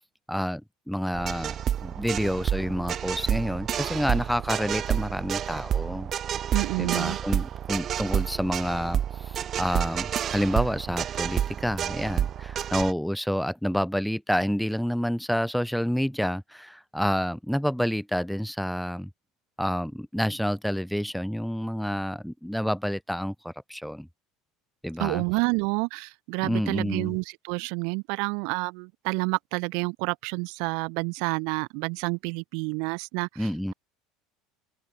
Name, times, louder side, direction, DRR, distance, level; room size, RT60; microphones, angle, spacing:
voice 1, 0.3-0.6 0.9-6.1 6.8-19.1 19.6-24.1 24.8-25.2 26.4-27.2 33.4-33.7, equal, ahead, 0.4 m, -28 dB
sound 1, 1.1-12.9, right 9 dB, 40° right, 0.7 m, -29 dB
voice 2, 6.5-7.2 25.0-33.7, right 35 dB, 70° right, 0.9 m, -29 dB
open air
supercardioid pair, 115°, 0 cm